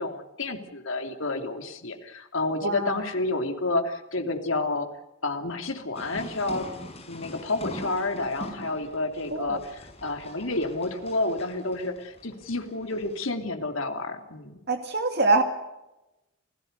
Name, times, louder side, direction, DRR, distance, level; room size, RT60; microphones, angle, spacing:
voice 1, 0.0-4.9 5.2-6.7 7.1-14.6, left 2 dB, 75° left, 5 dB, 3.0 m, -30 dB
voice 2, 2.6-3.0 9.3-9.6 14.7-15.4, right 3 dB, 50° right, 6 dB, 2.4 m, -24 dB
sound 1, 5.9-13.2, left 1 dB, 30° left, 5.7 m, -42 dB
28.5 x 17.5 x 6.8 m, 0.96 s
head